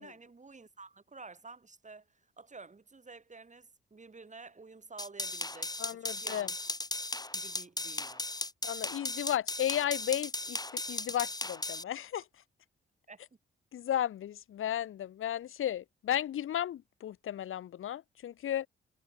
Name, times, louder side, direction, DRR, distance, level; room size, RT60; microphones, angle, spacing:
voice 1, 0.0-6.5 7.3-8.3 13.1-13.2, right 4 dB, 35° right, 7.4 m, -51 dB
sound 1, 5.0-11.8, left 2 dB, 20° left, 4.1 m, -37 dB
voice 2, 5.8-6.5 8.6-12.3 13.7-18.7, left 11 dB, 75° left, 2.1 m, -34 dB
supercardioid pair, 55°, 21 cm